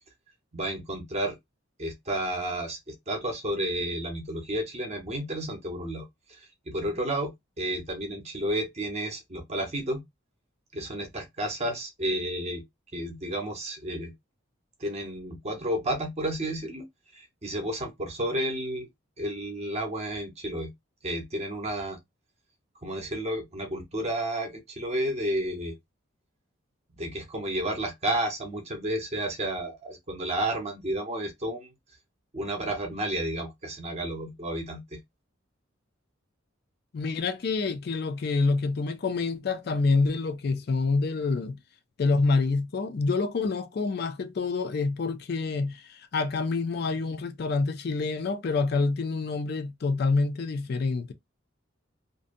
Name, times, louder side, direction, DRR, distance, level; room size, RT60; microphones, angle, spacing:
voice 1, 0.5-1.4 1.8-2.8 3.1-10.0 10.7-12.6 12.9-14.1 14.8-16.9 17.1-18.9 19.2-20.7 21.0-22.0 22.8-25.7 27.0-31.7 32.3-35.0, right 1 dB, 35° right, 0.7 m, -31 dB
voice 2, 36.9-41.6 42.0-51.1, left 4 dB, 50° left, 0.4 m, -27 dB
2.6 x 2.2 x 2.5 m
head